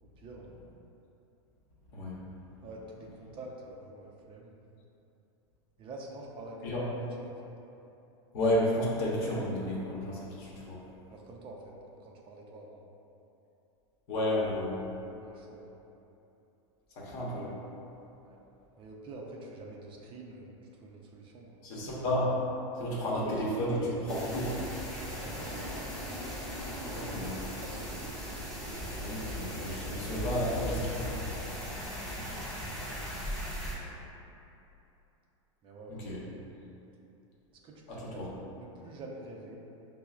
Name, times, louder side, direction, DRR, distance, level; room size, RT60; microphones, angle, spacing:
voice 1, 0.0-0.6 2.6-4.6 5.8-7.5 11.1-11.7 12.0-12.8 15.2-15.7 18.2-18.4 18.8-20.5 20.8-21.7 23.0-24.2 25.2-25.7 26.8-28.3 32.1-34.0 35.6-36.2 37.6-39.6, right 2 dB, 35° right, -1 dB, 0.4 m, -47 dB
voice 2, 8.3-10.8 14.1-14.8 17.0-17.6 21.6-22.3 22.8-23.8 24.1-24.6 27.1-27.3 28.9-31.4 35.9-36.2 37.9-38.3, left 1 dB, 60° left, -5 dB, 0.9 m, -32 dB
sound 1, 24.1-33.7, equal, 5° left, 0.9 m, -38 dB
5.4 x 2.0 x 2.3 m, 2.9 s
hypercardioid pair, 115°, 16 cm